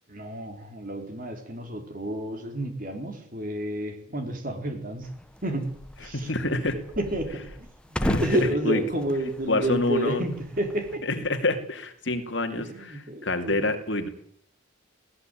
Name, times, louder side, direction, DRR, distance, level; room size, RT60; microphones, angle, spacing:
voice 1, 0.1-5.1 5.4-5.7 6.0-6.3 7.0-11.0 12.6-13.6, right 1 dB, 45° right, 6 dB, 3.7 m, -30 dB
sound 1, 5.0-11.0, equal, 5° left, 0.9 m, -37 dB
voice 2, 6.1-6.8 8.0-8.8 9.5-10.2 11.0-14.1, left 2 dB, 60° left, 5 dB, 2.6 m, -27 dB
18.5 x 17.5 x 9.2 m, 0.66 s
head